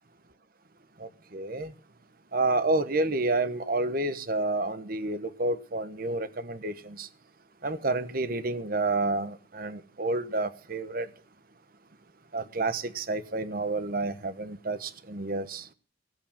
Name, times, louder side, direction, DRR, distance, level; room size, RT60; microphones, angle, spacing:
voice 1, 1.0-1.7 2.3-7.1 7.6-11.1 12.3-15.7, right 2 dB, 50° right, 1.1 m, -29 dB
17.5 x 8.1 x 7.1 m
head